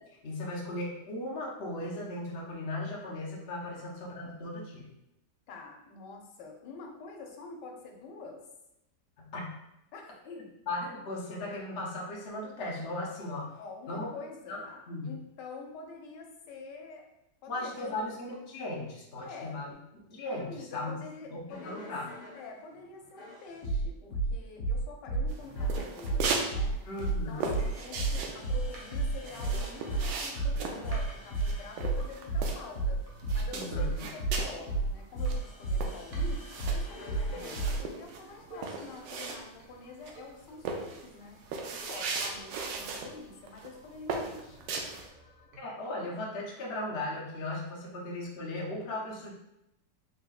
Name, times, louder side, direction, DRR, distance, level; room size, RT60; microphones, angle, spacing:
voice 1, 0.2-4.9 9.2-9.5 10.2-13.5 13.9-14.1 14.5-15.1 17.5-19.7 20.1-21.0 21.3-22.1 26.8-27.5 33.5-33.8 45.6-49.3, left 2 dB, 50° left, -3 dB, 0.8 m, -37 dB
voice 2, 5.5-8.4 9.9-10.2 13.6-17.1 17.4-17.9 19.2-19.6 20.4-21.9 22.3-26.8 27.3-33.0 33.3-41.4 41.8-44.7, left 4 dB, 90° left, 2 dB, 1.3 m, -46 dB
sound 1, 21.5-22.5 23.2-37.8 38.5-38.9, right 3 dB, 70° left, 1.8 m, -32 dB
sound 2, 25.3-26.5 26.8-32.9 33.2-34.6 35.0-35.1 35.3-39.7 40.1-40.3 40.7-43.1 43.5-43.7 44.1-45.1, right 4 dB, 85° right, 1.2 m, -37 dB
sound 3, 27.6-45.6, right 2 dB, 60° right, 1.1 m, -55 dB
4.1 x 3.7 x 2.3 m, 0.85 s
omnidirectional pair, 1.9 m